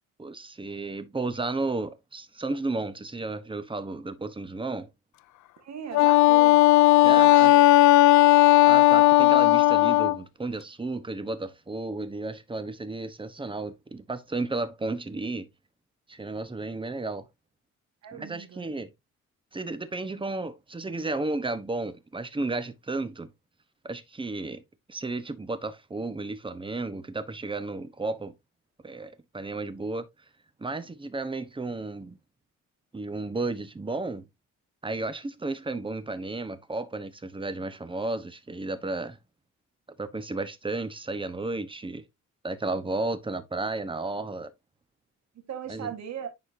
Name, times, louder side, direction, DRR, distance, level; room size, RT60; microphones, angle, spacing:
voice 1, 0.2-4.9 7.0-7.5 8.6-15.5 16.1-17.3 18.1-18.9 19.5-23.3 23.8-24.6 24.9-28.3 28.8-30.0 30.6-32.2 32.9-34.3 34.8-39.2 40.0-42.0 42.4-44.5 45.7-45.9, right 3 dB, 15° right, 1.0 m, -33 dB
voice 2, 5.6-6.7 7.0-7.8 18.0-18.7 45.3-46.3, right 8 dB, 60° right, 1.6 m, -38 dB
Wind instrument woodwind instrument, 5.9-10.2, left 18 dB, 70° left, 0.5 m, -16 dB
10.0 x 4.4 x 2.7 m
cardioid pair, 90°, 30 cm